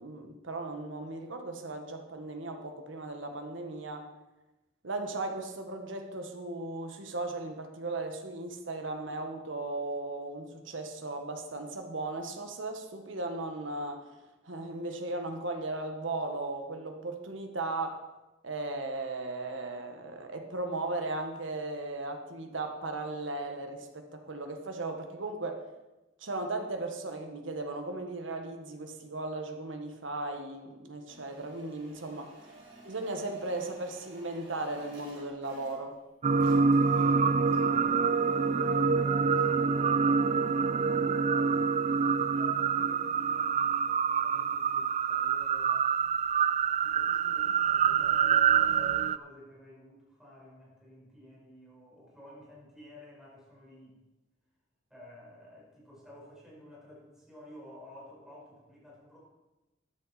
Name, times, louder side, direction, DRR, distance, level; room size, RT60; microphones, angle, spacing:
voice 1, 0.0-4.1 4.8-14.1 14.4-18.0 18.4-25.6 26.2-32.3 32.8-36.0, right 2 dB, 90° right, 5 dB, 1.6 m, -36 dB
sound 1, 31.1-36.0 36.3-37.8, right 2 dB, 65° right, 4.7 m, -54 dB
sound 2, 36.2-49.2, right 6 dB, 35° right, 0.3 m, -26 dB
voice 2, 37.3-41.7 41.9-45.9 46.8-54.0 54.9-59.2, equal, 5° right, -6 dB, 4.9 m, -52 dB
13.0 x 10.0 x 4.3 m, 1.0 s
head